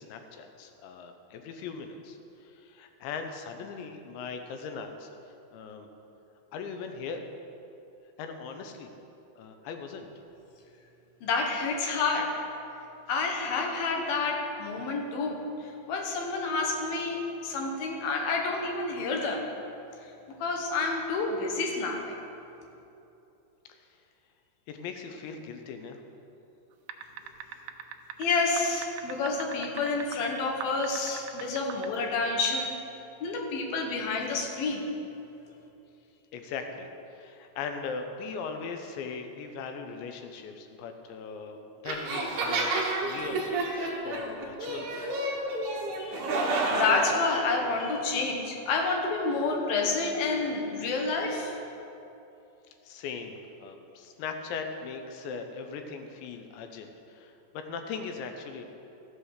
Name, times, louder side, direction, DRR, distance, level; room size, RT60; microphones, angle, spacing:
voice 1, 0.0-5.1 5.5-5.9 6.5-7.2 8.2-8.9 9.4-10.1 23.8-23.9 24.7-26.0 36.3-45.3 52.8-58.7, left 5 dB, 90° left, 5 dB, 3.2 m, -39 dB
voice 2, 11.2-12.3 13.1-19.4 20.4-22.2 28.2-32.7 33.2-34.8 45.9-46.2 46.6-51.6, left 3 dB, 65° left, 1 dB, 2.8 m, -29 dB
sound 1, 26.9-30.2 30.6-32.0, right 10 dB, 85° right, 2.3 m, -40 dB
sound 2, 41.9-47.2, right 2 dB, 60° right, 2.2 m, -30 dB
14.0 x 7.7 x 6.5 m, 2.8 s
omnidirectional pair, 5.0 m